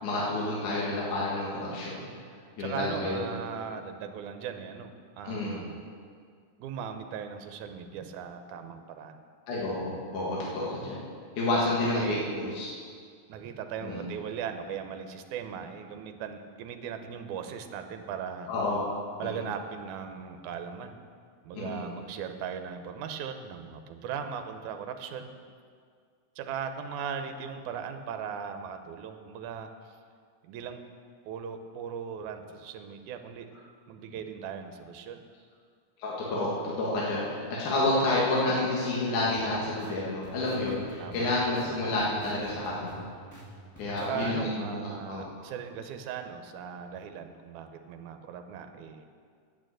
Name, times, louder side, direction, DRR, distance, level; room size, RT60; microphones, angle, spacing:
voice 1, 0.0-2.1 2.6-3.3 5.2-5.6 9.5-11.0 11.3-12.7 13.8-14.0 18.5-18.8 21.5-21.9 36.0-43.0 43.8-45.3, left 2 dB, 70° left, -6 dB, 3.1 m, -29 dB
voice 2, 2.6-5.8 6.6-9.2 11.8-12.6 13.3-18.5 19.2-21.0 21.4-25.3 26.4-29.7 30.4-30.8 31.3-35.2 41.0-41.4 41.7-41.8 44.0-49.1, right 7 dB, 75° right, 7 dB, 2.1 m, -38 dB
sound 1, 39.2-44.3, right 2 dB, 10° left, 0.8 m, -47 dB
9.0 x 8.8 x 7.7 m, 2.1 s
omnidirectional pair, 3.7 m